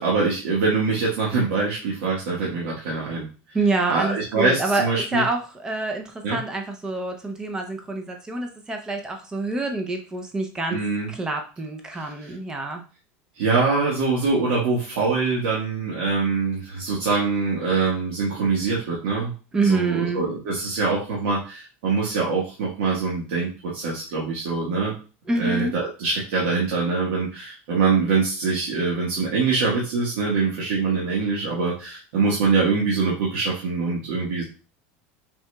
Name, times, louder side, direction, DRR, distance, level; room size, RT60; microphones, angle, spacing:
voice 1, 0.0-3.3 3.9-5.2 6.2-6.4 10.7-11.1 11.9-12.1 13.3-19.3 19.6-24.9 25.4-34.4, right 4 dB, 70° right, -5 dB, 1.4 m, -24 dB
voice 2, 3.5-10.8 11.1-12.8 19.5-20.2 25.3-25.7, right 3 dB, 10° right, 4 dB, 0.5 m, -26 dB
5.8 x 3.8 x 2.2 m, 0.35 s
supercardioid pair, 180°, 7 cm